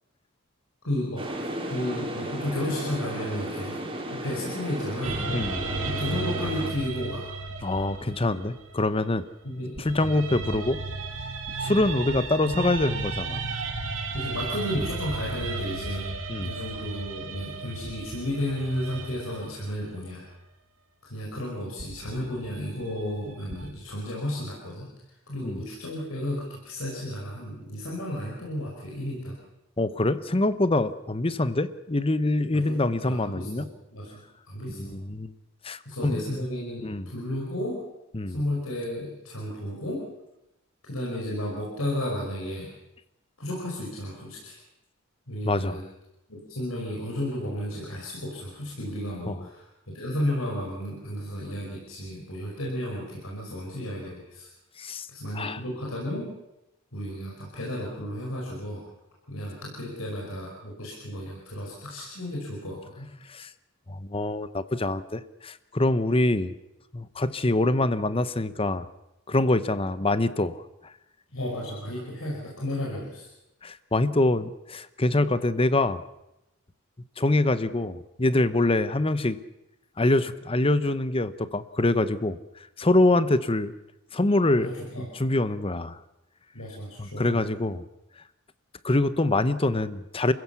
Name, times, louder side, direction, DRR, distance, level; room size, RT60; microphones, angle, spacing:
voice 1, 0.8-1.2 1.7-3.8 4.1-5.2 5.8-7.3 9.4-10.1 14.1-16.1 16.4-20.3 21.1-24.9 25.3-29.4 32.5-34.2 34.5-35.0 35.9-37.8 38.3-40.0 40.8-42.7 43.4-44.6 45.3-45.8 46.3-54.5 55.1-56.3 56.9-58.8 59.3-63.1 71.3-73.3 84.6-85.1 86.5-87.4, left 1 dB, 80° left, -3 dB, 5.4 m, -33 dB
sound 1, 1.2-6.7, right 1 dB, 25° right, 3.8 m, -34 dB
sound 2, 5.0-9.2 9.8-19.8 21.8-23.7, right 3 dB, 65° right, 2.8 m, -34 dB
voice 2, 5.3-5.6 7.6-9.3 9.8-10.8 11.6-13.4 16.3-16.5 25.4-25.6 29.8-33.7 34.7-35.3 35.6-36.2 36.8-37.1 38.1-38.4 45.4-45.8 49.3-49.4 54.8-55.1 55.3-55.6 63.3-63.5 63.9-66.5 66.9-68.9 69.3-70.9 73.6-76.0 77.2-79.4 80.0-82.4 82.8-83.7 84.1-84.7 85.0-86.0 87.0-87.8 88.8-90.3, left 2 dB, 25° left, 14 dB, 0.9 m, -25 dB
28.5 x 16.0 x 7.1 m, 0.90 s
head